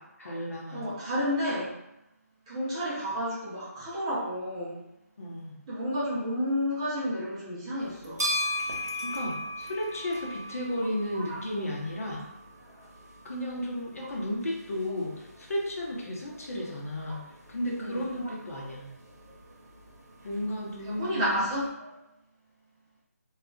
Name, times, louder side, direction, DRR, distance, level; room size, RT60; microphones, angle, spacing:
voice 1, 0.2-0.9 5.2-5.6 9.0-12.2 13.2-17.2 17.5-18.8 20.2-21.4, left 1 dB, 60° left, -2 dB, 0.8 m, -33 dB
voice 2, 0.7-1.8 2.5-4.8 5.7-8.3 11.1-11.4 17.1-17.2 17.8-18.1 18.5-18.6 20.8-22.0, equal, 15° right, -8 dB, 0.5 m, -31 dB
sound 1, 7.8-21.7, left 1 dB, 75° right, 0.8 m, -39 dB
2.3 x 2.0 x 3.7 m, 0.87 s
hypercardioid pair, 170°, 9 cm